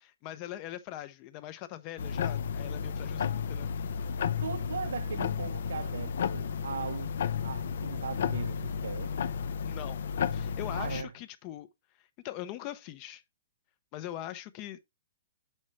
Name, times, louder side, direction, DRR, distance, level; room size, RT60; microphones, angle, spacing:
voice 1, 0.0-3.7 9.6-10.0 10.3-11.7 12.0-13.2 13.9-14.8, left 13 dB, 30° left, 0.6 m, -41 dB
sound 1, 2.0-11.0, left 7 dB, 70° left, 0.6 m, -33 dB
voice 2, 4.4-7.1 7.4-9.1 10.7-11.1, right 6 dB, 90° right, 0.4 m, -39 dB
7.4 x 5.4 x 3.2 m
hypercardioid pair, 155°, 0 cm